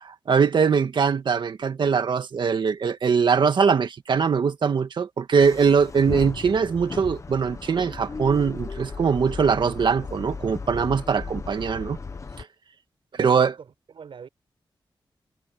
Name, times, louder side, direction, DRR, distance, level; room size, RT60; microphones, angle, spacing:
voice 1, 0.0-12.0 12.4-12.5 13.2-13.5, right 6 dB, 65° right, 1.7 m, -22 dB
sound 1, 5.4-12.4, left 4 dB, 35° left, 1.1 m, -36 dB
voice 2, 11.4-11.9 13.2-14.3, right 6 dB, 80° right, 5.9 m, -44 dB
wide cardioid pair, 160°, 9 cm